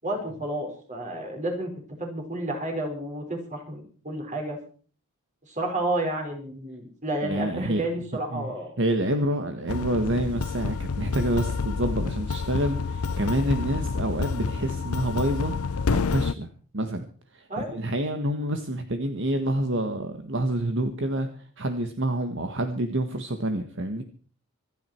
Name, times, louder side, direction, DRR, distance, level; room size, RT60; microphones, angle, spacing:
voice 1, 0.0-1.7 2.0-4.6 5.5-8.7 17.5-17.7, right 1 dB, 35° right, 2 dB, 5.1 m, -31 dB
voice 2, 7.2-7.8 8.3-8.5 8.8-16.5 16.7-17.0 17.3-24.0, right 1 dB, 55° right, 7 dB, 1.6 m, -28 dB
sound 1, 9.7-16.3, left 5 dB, 85° left, 0.6 m, -28 dB
26.5 x 9.7 x 4.5 m, 0.42 s
head